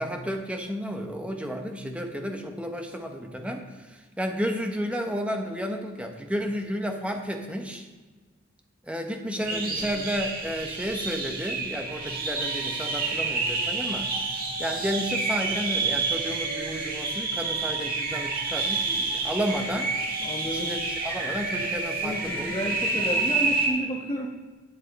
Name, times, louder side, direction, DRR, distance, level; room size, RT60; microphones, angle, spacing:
voice 1, 0.0-7.9 8.8-14.1 14.6-19.9 20.4-22.8, equal, 5° right, 4 dB, 0.9 m, -32 dB
sound 1, 9.4-23.7, right 3 dB, 45° right, 1.8 m, -29 dB
voice 2, 9.5-10.0 20.2-20.7 22.0-24.3, equal, 20° left, -2 dB, 1.1 m, -32 dB
11.0 x 8.3 x 4.1 m, 1.3 s
head